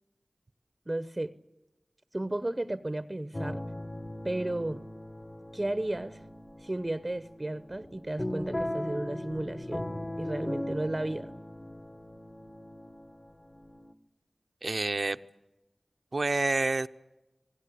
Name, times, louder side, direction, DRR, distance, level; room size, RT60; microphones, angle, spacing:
voice 1, 0.9-1.3 2.1-3.6 4.2-4.8 5.5-6.2 6.6-11.3, right 1 dB, 35° right, 0.9 m, -33 dB
sound 1, 3.3-13.9, left 1 dB, 35° left, 1.9 m, -39 dB
voice 2, 14.6-15.2 16.1-16.9, right 3 dB, 65° right, 0.8 m, -28 dB
27.0 x 19.0 x 8.4 m
wide cardioid pair, 40°, 0 cm